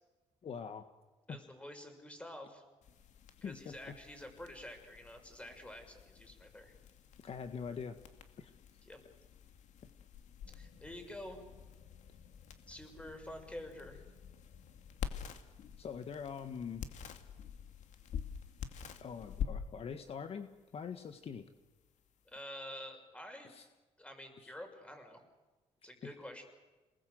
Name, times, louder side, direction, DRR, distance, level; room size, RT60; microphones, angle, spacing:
voice 1, 0.4-0.8 1.3-1.4 3.4-3.7 7.2-8.0 8.4-8.5 15.8-16.8 19.0-21.4 23.4-23.7 24.4-24.5, left 6 dB, 50° left, 8 dB, 1.6 m, -43 dB
voice 2, 1.3-2.6 3.4-6.7 8.8-9.0 10.5-11.4 12.7-14.0 22.3-23.6 24.0-25.2 25.8-26.4, left 1 dB, 10° left, 5 dB, 6.1 m, -48 dB
sound 1, 2.8-22.4, left 8 dB, 70° left, 2.3 m, -48 dB
28.0 x 20.0 x 7.9 m, 1.2 s
cardioid pair, 90°, 13 cm